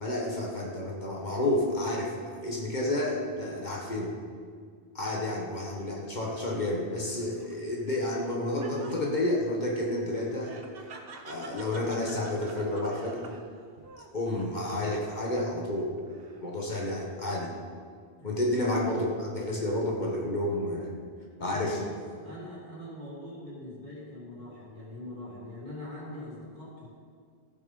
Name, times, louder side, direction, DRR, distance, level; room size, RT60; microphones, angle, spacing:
voice 1, 0.0-4.1 4.9-10.6 11.3-13.3 14.1-15.9 16.4-17.5 18.2-20.9 21.4-21.8, left 1 dB, 50° left, -2 dB, 1.5 m, -30 dB
Laughter, 7.1-15.5 15.9-16.6, right 3 dB, 70° right, 1.1 m, -49 dB
voice 2, 21.5-21.9 22.2-26.9, left 1 dB, 45° right, -6 dB, 3.3 m, -42 dB
15.0 x 6.5 x 5.3 m, 2.1 s
omnidirectional pair, 1.0 m